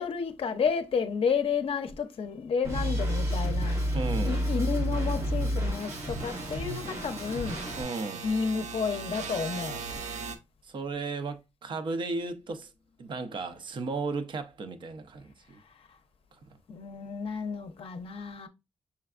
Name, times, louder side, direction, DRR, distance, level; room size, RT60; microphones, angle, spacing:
voice 1, 0.0-4.0 4.2-7.8 8.2-9.8 16.7-18.5, left 5 dB, 55° left, 0.6 m, -31 dB
Drum kit, 2.6-7.8, right 1 dB, 25° right, 1.7 m, -37 dB
sound 1, 2.7-10.4, equal, 90° right, 0.6 m, -32 dB
voice 2, 3.9-4.4 7.8-8.3 10.6-12.7 13.0-15.6, right 3 dB, 45° right, 0.6 m, -35 dB
5.7 x 3.3 x 2.4 m
wide cardioid pair, 175°, 12 cm